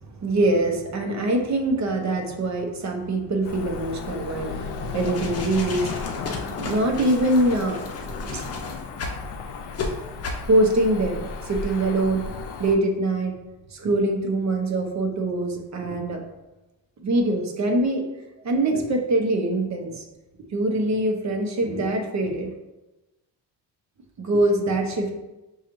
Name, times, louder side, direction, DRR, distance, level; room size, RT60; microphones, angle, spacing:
voice 1, 0.0-8.5 10.4-12.2 12.6-13.3 13.7-16.2 17.0-18.0 18.4-20.0 20.5-22.5 24.2-25.1, right 2 dB, 45° right, 3 dB, 0.8 m, -24 dB
Cricket / Motor vehicle (road), 3.4-12.8, left 4 dB, 75° left, 0.6 m, -34 dB
sound 1, 4.9-9.2 9.7-9.9 10.2-10.5, left 3 dB, 35° left, 0.6 m, -34 dB
6.2 x 2.4 x 3.0 m, 1.0 s
cardioid pair, 125°, 40 cm